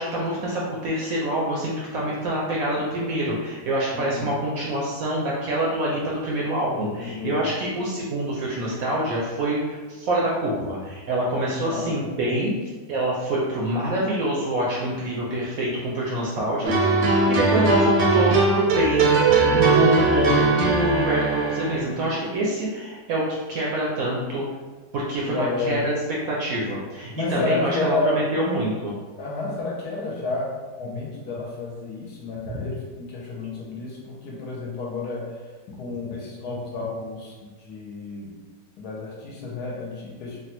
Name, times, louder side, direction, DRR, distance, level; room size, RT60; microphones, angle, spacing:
voice 1, 0.0-16.9 17.3-19.1 19.5-24.4 24.9-25.9 26.3-28.9 32.5-32.6, right 1 dB, 70° right, -4 dB, 0.8 m, -26 dB
voice 2, 3.9-4.3 6.7-7.5 11.5-11.9 19.3-19.9 20.2-20.6 25.2-25.8 27.1-28.2 29.2-35.4 35.8-38.3 38.8-40.4, left 3 dB, 70° left, -3 dB, 1.1 m, -31 dB
sound 1, 16.6-21.8, right 3 dB, 90° right, 1.2 m, -20 dB
3.2 x 2.2 x 2.8 m, 1.3 s
omnidirectional pair, 1.9 m